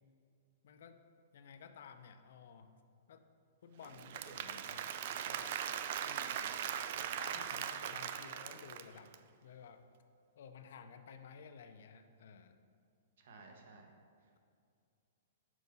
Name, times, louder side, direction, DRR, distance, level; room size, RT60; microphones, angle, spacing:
voice 1, 0.6-1.0 1.3-2.8 3.1-3.3 3.6-5.6 6.9-9.1 9.4-9.8 10.4-12.6, left 6 dB, 60° left, 7 dB, 0.5 m, -54 dB
Applause / Crowd, 3.8-9.1, right 9 dB, 45° right, 0.3 m, -40 dB
voice 2, 6.0-6.5 13.2-13.9, right 3 dB, 60° right, 3 dB, 1.1 m, -56 dB
6.3 x 5.0 x 5.4 m, 2.3 s
hypercardioid pair, 170°, 0 cm